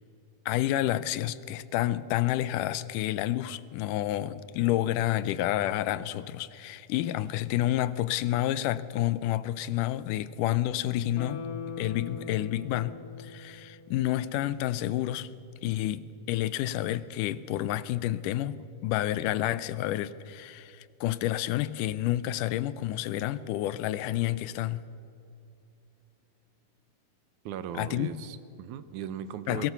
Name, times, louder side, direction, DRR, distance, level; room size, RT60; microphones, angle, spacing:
voice 1, 0.5-11.5 11.8-15.3 15.6-24.8 27.8-28.2 29.5-29.7, left 14 dB, 85° left, 2.2 m, -29 dB
Guitar, 11.1-14.4 14.8-14.9, left 4 dB, 50° left, 2.1 m, -42 dB
voice 2, 27.5-29.7, right 9 dB, 75° right, 2.1 m, -38 dB
21.5 x 18.0 x 6.8 m
omnidirectional pair, 3.7 m